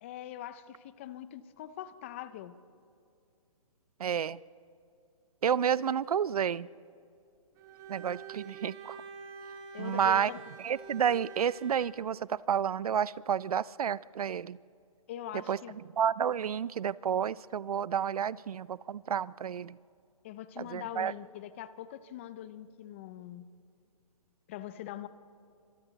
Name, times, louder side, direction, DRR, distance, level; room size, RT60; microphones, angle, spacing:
voice 1, 0.0-2.5 9.7-10.4 15.1-15.8 20.2-23.5 24.5-25.1, left 11 dB, 20° left, 14 dB, 0.6 m, -42 dB
voice 2, 4.0-4.4 5.4-6.7 7.9-9.0 9.8-10.3 10.6-14.6 15.5-15.6 16.0-19.8 20.6-21.1, right 8 dB, 80° right, 21 dB, 0.5 m, -30 dB
Bowed string instrument, 7.6-12.1, right 5 dB, 15° right, 1.2 m, -47 dB
28.0 x 26.0 x 4.0 m, 2.5 s
hypercardioid pair, 165°, 19 cm